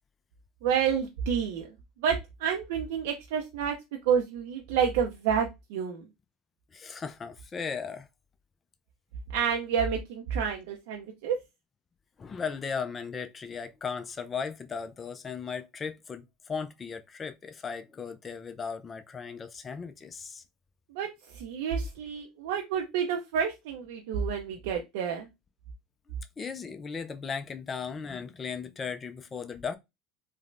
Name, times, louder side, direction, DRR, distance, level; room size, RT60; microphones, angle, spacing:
voice 1, 0.6-1.6 2.0-3.8 4.1-6.1 9.3-11.4 20.9-25.3, right 7 dB, 75° right, 0.5 m, -29 dB
voice 2, 6.7-8.1 12.2-20.4 26.4-29.8, left 6 dB, 30° left, 0.3 m, -37 dB
3.2 x 2.1 x 2.5 m
supercardioid pair, 95°, 0 cm